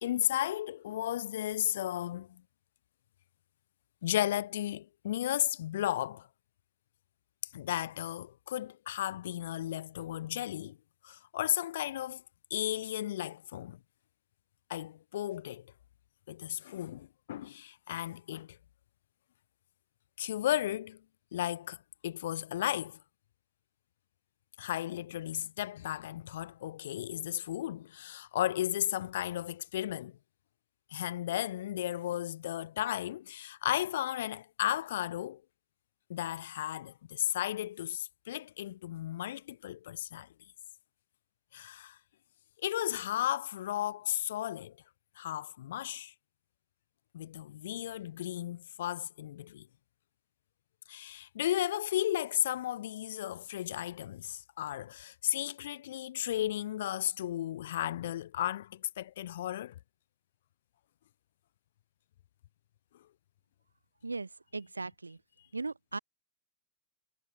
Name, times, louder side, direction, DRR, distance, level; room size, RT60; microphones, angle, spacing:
voice 1, 0.0-2.4 4.0-6.3 7.5-10.8 11.0-12.2 12.5-13.8 14.7-15.7 16.3-18.6 20.2-21.0 21.3-23.0 24.6-30.2 30.9-35.4 36.1-40.3 41.5-42.0 42.6-44.8 45.2-46.1 47.1-49.7 50.9-59.8, left 12 dB, 60° left, 1.3 m, -34 dB
voice 2, 64.0-65.2 65.5-66.0, right 3 dB, 80° right, 3.0 m, -38 dB
figure-of-eight pair, 90°, 0 cm